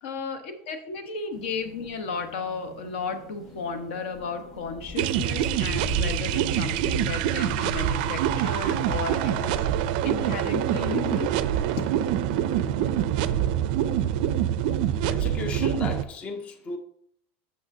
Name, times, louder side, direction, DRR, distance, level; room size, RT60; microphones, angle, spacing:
voice 1, 0.0-9.6 10.0-11.4, left 4 dB, 70° left, 1.2 m, -34 dB
sound 1, 1.3-11.2, left 1 dB, ahead, 0.8 m, -40 dB
sound 2, 1.6-13.7, left 4 dB, 40° left, 1.3 m, -51 dB
sound 3, 5.0-16.0, right 11 dB, 50° right, 0.4 m, -25 dB
voice 2, 15.1-16.8, left 4 dB, 20° left, 0.5 m, -35 dB
8.6 x 6.5 x 2.7 m
supercardioid pair, 175°, 6 cm